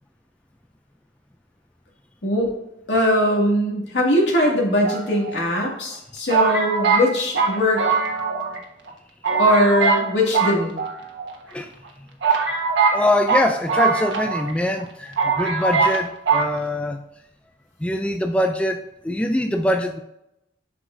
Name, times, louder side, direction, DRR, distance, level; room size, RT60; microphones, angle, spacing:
voice 1, 2.2-2.5 2.9-7.8 9.4-10.8, equal, 85° left, -2 dB, 2.1 m, -20 dB
sound 1, 4.8-5.6 6.3-8.6 8.9-9.0 9.2-10.1 10.3-11.3 11.8-11.9 12.2-14.5 14.8-14.9 15.2-16.0 16.3-16.5, right 5 dB, 90° right, 1.3 m, -21 dB
voice 2, 12.9-17.0 17.8-20.0, left 1 dB, 5° left, 6 dB, 0.3 m, -23 dB
7.9 x 5.9 x 2.6 m, 0.85 s
head